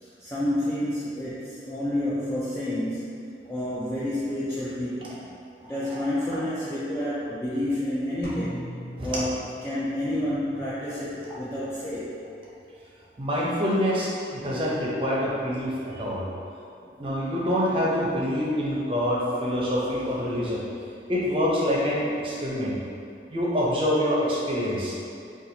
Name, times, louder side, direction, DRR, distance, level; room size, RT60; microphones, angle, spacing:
voice 1, 0.0-5.2 5.6-8.7 9.0-12.3 15.9-16.0, left 1 dB, 15° left, -10 dB, 0.3 m, -29 dB
sound 1, 8.2-10.2, left 1 dB, 55° left, 0.7 m, -40 dB
voice 2, 13.2-16.2 17.0-20.6 21.1-22.7 23.3-24.9, equal, 30° right, -5 dB, 0.6 m, -26 dB
4.2 x 2.3 x 2.7 m, 2.5 s
head